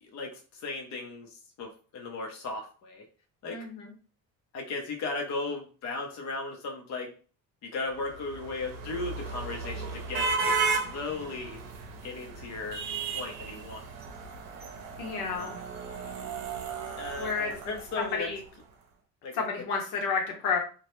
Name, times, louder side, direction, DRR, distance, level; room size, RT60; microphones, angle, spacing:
voice 1, 0.0-3.0 3.4-3.6 4.5-7.1 7.6-11.6 12.0-12.8 13.1-13.8 15.3-15.6 17.0-18.3 19.2-19.4, left 3 dB, 55° left, 1 dB, 0.7 m, -36 dB
voice 2, 3.5-3.9 15.0-15.6 17.2-17.5 18.0-18.4 19.3-20.6, left 5 dB, 85° left, 1 dB, 0.9 m, -30 dB
sound 1, 8.0-18.4, right 4 dB, 80° right, 0.6 m, -34 dB
2.2 x 2.0 x 2.9 m, 0.38 s
cardioid pair, 125°, 34 cm